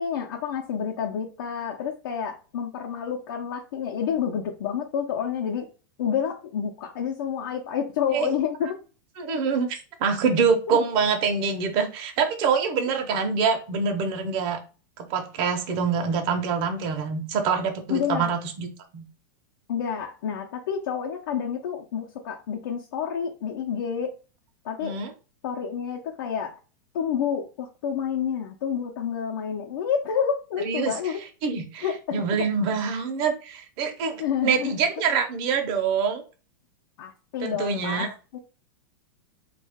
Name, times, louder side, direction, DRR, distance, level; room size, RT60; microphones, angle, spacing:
voice 1, 0.0-5.7 6.0-8.8 10.7-10.8 17.9-18.3 19.7-24.1 24.6-25.0 25.4-26.6 26.9-31.2 31.8-32.5 34.2-34.7 37.0-38.4, left 7 dB, 70° left, -1 dB, 0.7 m, -29 dB
voice 2, 9.2-14.6 15.0-19.0 24.8-25.1 30.6-31.1 31.4-36.2 37.4-38.1, right 5 dB, 45° right, 4 dB, 0.8 m, -25 dB
3.1 x 2.5 x 3.6 m, 0.35 s
supercardioid pair, 135°, 12 cm